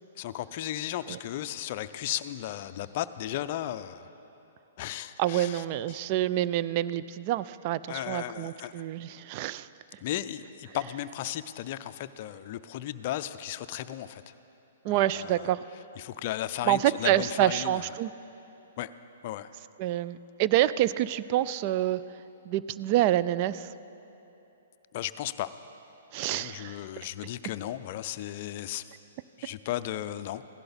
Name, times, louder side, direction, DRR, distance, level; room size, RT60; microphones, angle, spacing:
voice 1, 0.2-4.1 4.8-6.0 7.9-8.8 10.0-14.2 14.9-15.5 16.0-17.9 18.8-18.9 19.2-19.5 24.9-25.5 26.3-28.9 29.4-30.4, left 12 dB, 45° left, 11 dB, 0.4 m, -35 dB
voice 2, 5.2-9.7 14.8-15.6 16.7-18.1 19.8-22.0 22.5-23.7 26.1-26.8, right 13 dB, 40° right, 16 dB, 0.3 m, -27 dB
16.0 x 11.5 x 4.1 m, 3.0 s
hypercardioid pair, 125°, 0 cm